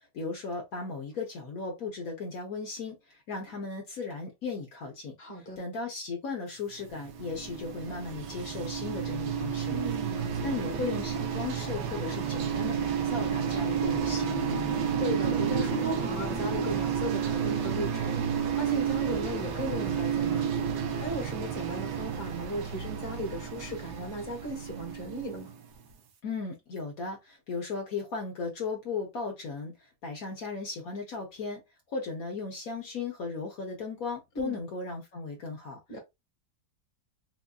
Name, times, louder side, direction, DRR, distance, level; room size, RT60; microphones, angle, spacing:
voice 1, 0.1-5.2 5.6-9.8 10.4-14.8 26.2-31.6 31.9-35.8, left 4 dB, 60° left, 1.2 m, -36 dB
voice 2, 5.2-5.6 9.7-10.5 14.9-20.5 21.0-25.5 34.3-34.6 35.9-36.0, right 1 dB, 10° left, 1.2 m, -36 dB
sound 1, 6.8-25.8, right 7 dB, 85° right, 1.4 m, -31 dB
4.2 x 2.5 x 2.3 m
omnidirectional pair, 1.8 m